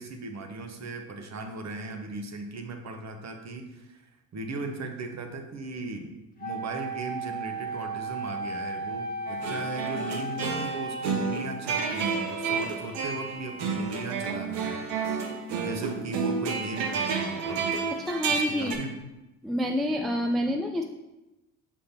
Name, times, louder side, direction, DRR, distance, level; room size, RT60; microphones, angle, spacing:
voice 1, 0.0-6.1 6.4-15.2 15.6-17.7 18.3-19.0, right 2 dB, 40° right, 5 dB, 1.1 m, -37 dB
Wind instrument woodwind instrument, 6.4-11.9, right 2 dB, 20° left, 1.6 m, -35 dB
sound 1, 9.3-18.8, right 5 dB, 65° right, 1.0 m, -30 dB
voice 2, 18.1-18.7 19.4-20.8, equal, ahead, 3 dB, 0.4 m, -28 dB
6.5 x 5.4 x 2.8 m, 0.99 s
hypercardioid pair, 60°, 44 cm